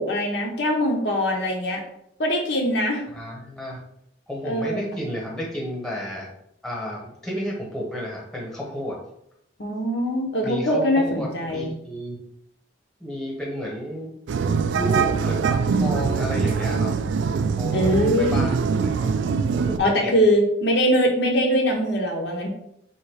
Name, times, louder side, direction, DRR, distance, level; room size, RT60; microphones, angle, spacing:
voice 1, 0.0-1.8 2.2-3.0 4.4-5.0 9.6-11.7 17.7-18.4 19.8-22.5, equal, 65° left, 1 dB, 0.8 m, -22 dB
voice 2, 3.1-3.8 4.3-6.3 6.6-9.0 10.4-12.2 13.0-14.1 14.7-16.9 17.6-18.7 19.0-19.1 19.6-20.2, equal, ahead, -3 dB, 1.1 m, -32 dB
sound 1, 14.3-19.8, right 5 dB, 75° right, 0.3 m, -23 dB
3.8 x 2.9 x 4.8 m, 0.76 s
head